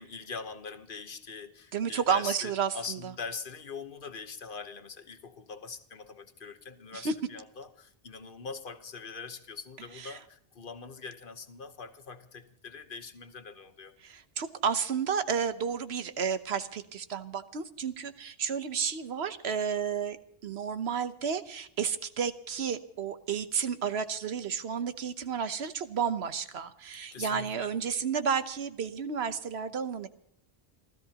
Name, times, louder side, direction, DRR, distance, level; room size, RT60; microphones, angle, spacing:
voice 1, 0.0-14.0 27.1-27.7, left 5 dB, 55° left, 1.2 m, -42 dB
voice 2, 1.7-3.0 6.9-7.1 10.0-10.2 14.0-20.2 20.4-30.1, right 6 dB, 85° right, 1.2 m, -31 dB
28.5 x 13.5 x 2.9 m
omnidirectional pair, 1.1 m